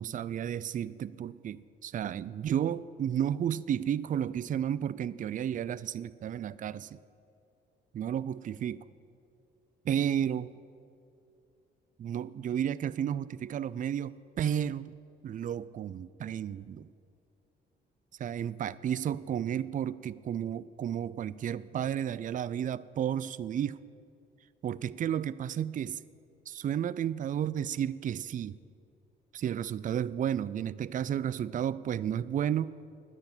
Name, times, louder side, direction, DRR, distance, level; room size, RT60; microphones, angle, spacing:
voice 1, 0.0-7.0 7.9-8.8 9.9-10.5 12.0-14.9 15.2-16.9 18.2-23.8 24.6-26.0 26.5-28.6 29.3-32.7, right 9 dB, 40° right, 18 dB, 0.4 m, -32 dB
10.0 x 9.8 x 8.8 m, 2.5 s
cardioid pair, 90°, 20 cm